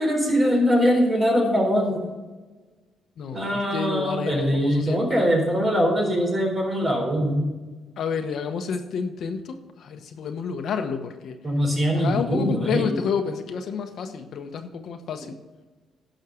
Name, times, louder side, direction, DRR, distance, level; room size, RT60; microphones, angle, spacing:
voice 1, 0.0-2.0 3.3-7.5 11.4-12.9, equal, 30° right, 0 dB, 4.1 m, -22 dB
voice 2, 3.2-5.2 8.0-11.4 11.9-15.3, left 6 dB, 65° left, 7 dB, 1.0 m, -30 dB
11.0 x 6.4 x 6.3 m, 1.3 s
cardioid pair, 90°, 0 cm